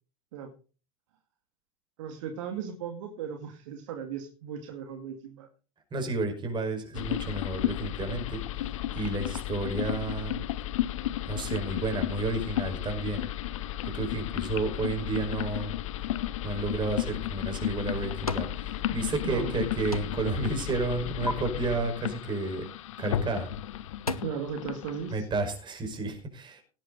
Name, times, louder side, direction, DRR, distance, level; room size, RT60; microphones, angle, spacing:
voice 1, 2.0-5.5 19.2-19.7 24.2-25.3, right 7 dB, 60° right, 4 dB, 2.2 m, -37 dB
voice 2, 5.9-10.4 11.3-13.3 13.8-15.8 16.4-22.7 23.0-23.5 25.1-26.6, right 3 dB, 25° right, 6 dB, 5.2 m, -31 dB
sound 1, 6.9-25.2, left 12 dB, 65° left, 0.9 m, -33 dB
sound 2, 17.5-18.6 18.9-19.6 19.9-20.4 20.7-21.3 23.1-23.3 23.7-24.2, left 2 dB, 90° left, 1.1 m, -36 dB
17.0 x 9.8 x 4.1 m, 0.37 s
figure-of-eight pair, 80°, 18 cm